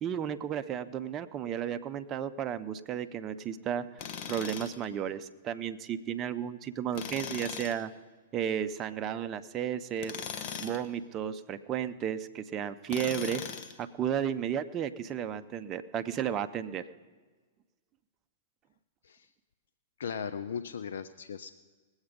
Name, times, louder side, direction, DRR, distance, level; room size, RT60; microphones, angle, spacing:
voice 1, 0.0-3.8 4.3-7.9 8.3-10.1 10.6-13.4 13.8-16.8, right 9 dB, 30° right, 9 dB, 0.6 m, -33 dB
Tools, 4.0-4.8 6.9-7.8 10.0-10.9 12.9-13.8, left 7 dB, 45° left, 1.2 m, -39 dB
voice 2, 20.0-21.5, left 7 dB, 75° left, 11 dB, 0.5 m, -37 dB
19.5 x 8.0 x 5.3 m, 1.4 s
hypercardioid pair, 115°, 0 cm